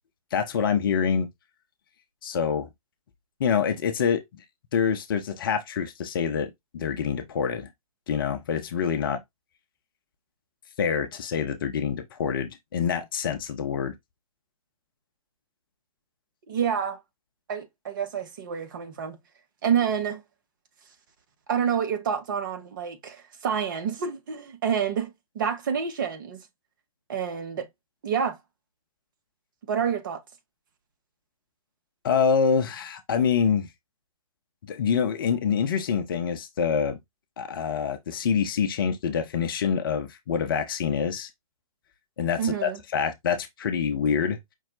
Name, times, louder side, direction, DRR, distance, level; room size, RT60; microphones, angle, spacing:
voice 1, 0.3-1.3 2.2-2.7 3.4-4.2 4.7-7.7 8.1-9.2 10.8-13.9 32.0-33.7 34.6-37.0 37.4-41.3 42.2-44.4, left 7 dB, 35° left, 0.7 m, -26 dB
voice 2, 16.5-17.0 17.5-19.2 19.6-20.2 21.5-26.4 27.1-27.7 28.0-28.4 29.7-30.2 42.4-42.8, right 7 dB, 35° right, 0.9 m, -28 dB
5.5 x 2.2 x 3.7 m
figure-of-eight pair, 135°, 19 cm